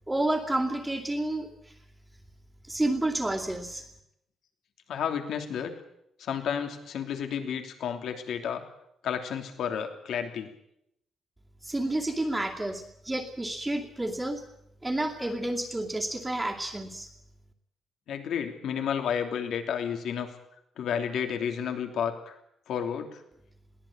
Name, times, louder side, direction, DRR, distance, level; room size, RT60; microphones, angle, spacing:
voice 1, 0.1-1.5 2.7-3.8 11.6-14.4 14.8-17.1, right 1 dB, 10° right, -5 dB, 2.5 m, -30 dB
voice 2, 4.9-5.7 6.2-8.6 9.0-10.5 18.1-20.3 20.8-22.3 22.7-23.2, left 8 dB, 75° left, 5 dB, 3.1 m, -31 dB
22.0 x 17.5 x 8.8 m, 0.78 s
cardioid pair, 145°, 0 cm